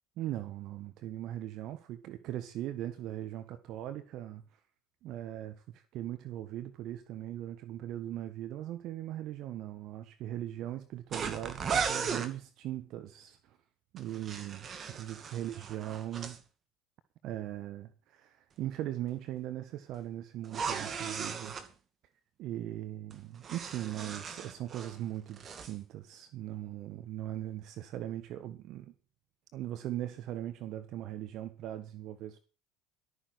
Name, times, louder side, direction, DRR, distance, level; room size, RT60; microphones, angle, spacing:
voice 1, 0.2-4.4 5.0-13.6 13.9-16.4 17.2-21.5 22.4-28.9 29.5-32.4, right 13 dB, 55° right, 1.3 m, -39 dB
sound 1, 11.1-12.3 14.0-16.4 20.4-21.7 23.1-25.0 25.3-25.7, right 6 dB, 40° right, 2.2 m, -37 dB
13.0 x 9.5 x 6.3 m
hypercardioid pair, 70°, 0 cm